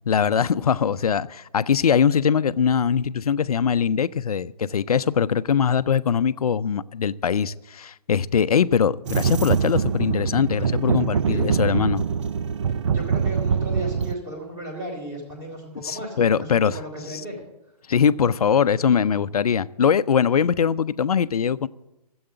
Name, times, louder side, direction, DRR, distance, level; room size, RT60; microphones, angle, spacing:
voice 1, 0.1-12.0 15.8-16.8 17.9-21.7, left 7 dB, 70° left, 0.5 m, -21 dB
sound 1, 9.1-14.1, right 6 dB, 50° right, 0.5 m, -24 dB
voice 2, 12.9-17.3, right 1 dB, 15° right, 3.3 m, -34 dB
13.5 x 7.9 x 7.8 m
figure-of-eight pair, 145°, 20 cm